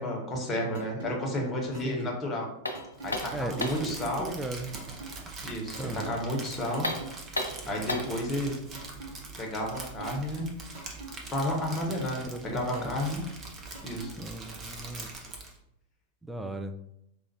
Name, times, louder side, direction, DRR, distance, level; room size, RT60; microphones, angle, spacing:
voice 1, 0.0-2.5 3.0-4.3 5.4-6.9 7.7-8.5 9.4-10.5 11.3-12.3 12.5-13.2 13.8-14.2, left 1 dB, 20° left, -1 dB, 1.0 m, -31 dB
sound 1, 0.7-1.1 1.7-2.1 2.7-3.1 3.7-4.1 4.7-5.1 5.7-6.1 6.7-7.1 7.7-8.1 8.7-9.1 9.7-10.1 10.7-11.1 11.7-12.1 12.7-13.1 13.7-14.1, right 5 dB, 50° right, 1.0 m, -43 dB
voice 2, 1.8-2.2 3.3-4.8 5.8-6.1 12.3-13.0 14.2-15.1 16.2-16.8, right 2 dB, 5° right, 7 dB, 0.3 m, -37 dB
sound 2, 2.6-3.9 6.7-8.2, left 1 dB, 80° left, 0.5 m, -33 dB
Crumpling crinkling, 3.0-15.6, right 3 dB, 25° right, 0.8 m, -43 dB
4.9 x 2.4 x 2.8 m, 0.79 s
figure-of-eight pair, 90°, 0 cm